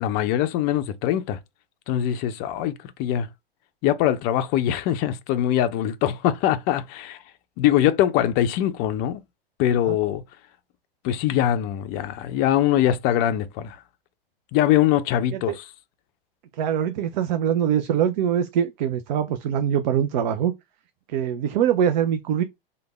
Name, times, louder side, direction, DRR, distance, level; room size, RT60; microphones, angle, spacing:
voice 1, 0.0-1.4 1.9-2.7 3.0-3.3 3.8-7.2 7.6-9.2 9.6-10.2 11.0-13.8 14.5-15.5, left 11 dB, 35° left, 0.4 m, -22 dB
voice 2, 16.5-20.5 21.1-22.4, right 9 dB, 50° right, 0.4 m, -23 dB
3.2 x 2.2 x 3.2 m
figure-of-eight pair, 95°, 30 cm